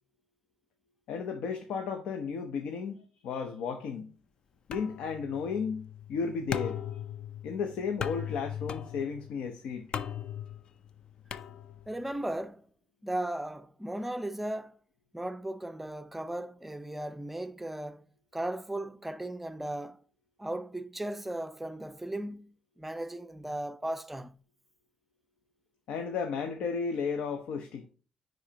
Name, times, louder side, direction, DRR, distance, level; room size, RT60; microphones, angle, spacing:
voice 1, 1.1-4.1 4.7-6.8 7.4-9.9 25.9-27.9, left 5 dB, 90° left, 0.7 m, -34 dB
sound 1, 4.7-12.1, left 9 dB, 55° left, 0.4 m, -39 dB
voice 2, 11.9-12.6 13.0-14.8 15.1-18.1 18.3-20.0 20.4-24.4, right 1 dB, 10° right, 0.4 m, -36 dB
9.9 x 3.9 x 2.8 m
cardioid pair, 110°, 2 cm